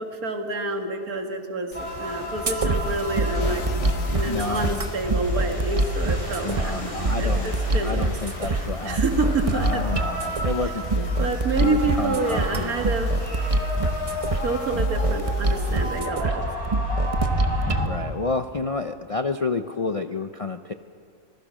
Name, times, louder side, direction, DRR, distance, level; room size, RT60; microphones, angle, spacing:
voice 1, 0.0-8.1 8.4-9.8 11.2-13.1 14.4-16.4, right 3 dB, 85° right, 5 dB, 2.4 m, -28 dB
sound 1, 1.7-16.0, left 5 dB, 65° left, 1.7 m, -43 dB
sound 2, 1.7-17.9, equal, 20° left, 4.4 m, -33 dB
sound 3, 2.5-17.9, right 2 dB, 25° right, 1.0 m, -25 dB
voice 2, 4.3-4.8 6.4-7.5 7.8-9.0 9.5-11.3 11.6-12.8 17.8-20.7, left 3 dB, 50° left, 8 dB, 0.4 m, -30 dB
25.5 x 20.0 x 6.4 m, 2.5 s
omnidirectional pair, 1.5 m